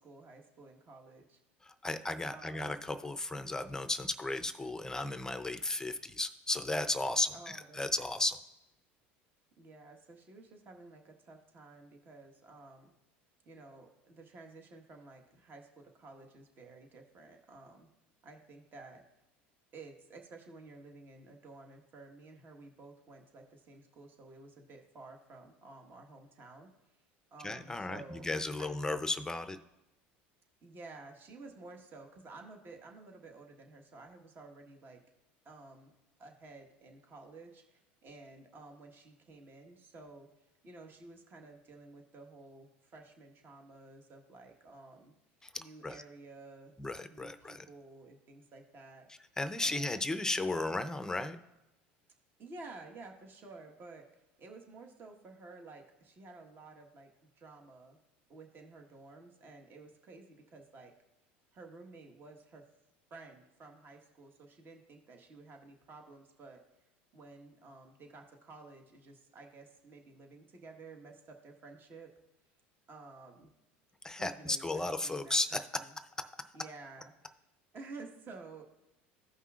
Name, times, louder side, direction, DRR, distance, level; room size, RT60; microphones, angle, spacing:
voice 1, 0.0-1.4 2.3-2.8 7.3-8.1 9.6-12.9 13.4-17.9 18.2-19.0 19.7-26.7 27.3-28.3 28.6-28.7 30.6-35.0 35.4-35.9 36.2-40.3 40.6-45.1 45.6-46.7 47.1-49.1 49.6-50.0 52.4-54.1 54.4-58.0 58.3-60.9 61.5-62.7 63.1-66.6 67.1-72.1 72.9-73.5 74.1-76.0 76.5-77.1 77.7-78.6, right 3 dB, 40° right, 3 dB, 1.4 m, -52 dB
voice 2, 1.6-8.4 27.4-29.6 45.4-46.0 46.8-47.7 49.4-51.4 74.0-75.6, left 2 dB, 10° left, 10 dB, 0.6 m, -35 dB
15.5 x 5.5 x 2.4 m, 0.94 s
supercardioid pair, 95°, 6 cm